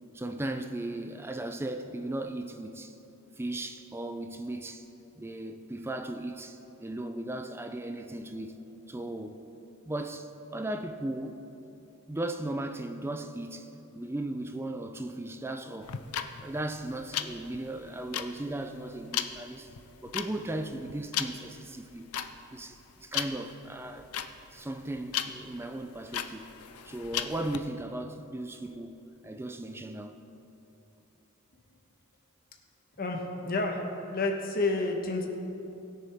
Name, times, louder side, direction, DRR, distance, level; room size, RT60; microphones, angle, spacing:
voice 1, 0.1-2.9 3.4-4.8 5.2-9.5 9.8-11.4 12.1-16.0 16.4-19.7 20.0-22.1 22.5-24.1 24.5-26.6 26.8-30.2, right 1 dB, 10° right, 0.4 m, -37 dB
sound 1, 15.8-27.6, left 10 dB, 85° left, 0.5 m, -36 dB
voice 2, 33.0-33.8 34.1-35.3, left 2 dB, 45° left, 1.2 m, -29 dB
20.0 x 6.9 x 3.5 m
head